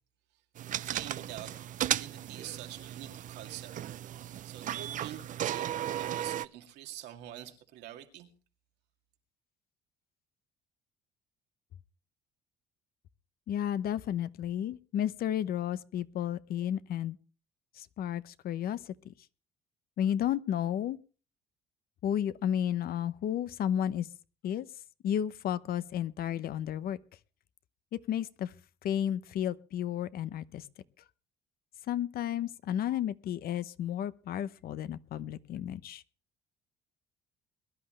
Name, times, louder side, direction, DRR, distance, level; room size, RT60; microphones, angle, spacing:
sound 1, 0.6-6.5, right 11 dB, 50° right, 0.5 m, -35 dB
voice 1, 0.8-1.5 1.9-3.7 4.2-8.3, right 12 dB, 85° right, 2.3 m, -46 dB
voice 2, 13.5-17.2 17.7-19.1 20.0-21.0 22.0-24.1 24.4-24.7 25.0-27.0 27.9-28.5 28.8-30.7 31.9-36.0, left 10 dB, 60° left, 0.9 m, -32 dB
22.0 x 11.0 x 3.2 m
cardioid pair, 110°, 17 cm